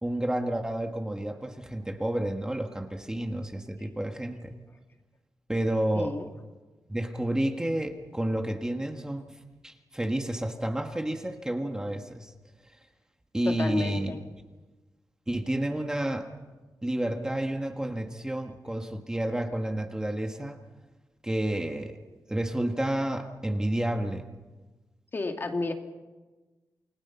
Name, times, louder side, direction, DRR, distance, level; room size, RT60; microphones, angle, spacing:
voice 1, 0.0-4.5 5.5-6.1 6.9-12.3 13.3-14.1 15.3-16.3 16.8-20.6 21.2-22.0 22.3-24.3, right 1 dB, 10° right, 4 dB, 1.7 m, -30 dB
voice 2, 5.9-6.3 13.5-14.2 25.1-25.7, left 3 dB, 35° left, 4 dB, 2.4 m, -31 dB
29.0 x 21.5 x 5.8 m, 1.2 s
wide cardioid pair, 130°, 6 cm